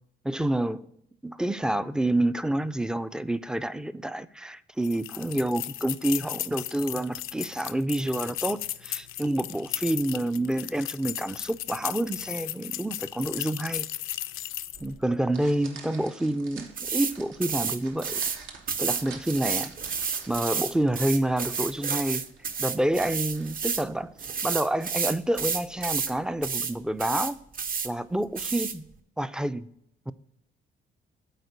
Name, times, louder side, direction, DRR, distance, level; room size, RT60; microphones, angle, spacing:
voice 1, 0.2-0.9 1.2-13.9 14.8-18.2 18.8-19.7 20.3-22.3 22.6-24.1 24.4-27.4 27.8-28.8 29.2-29.7 30.1-30.2, right 1 dB, 5° right, 0.3 m, -28 dB
sound 1, 4.8-14.9, left 14 dB, 85° left, 0.4 m, -35 dB
sound 2, 14.7-26.1, right 5 dB, 80° right, 1.1 m, -49 dB
sound 3, 16.8-17.1 17.4-18.4 18.7-23.9 24.2-26.1 26.4-26.7 27.0-27.9 28.4-28.8, right 6 dB, 45° right, 0.7 m, -30 dB
8.1 x 4.3 x 5.2 m
cardioid pair, 90°, 20 cm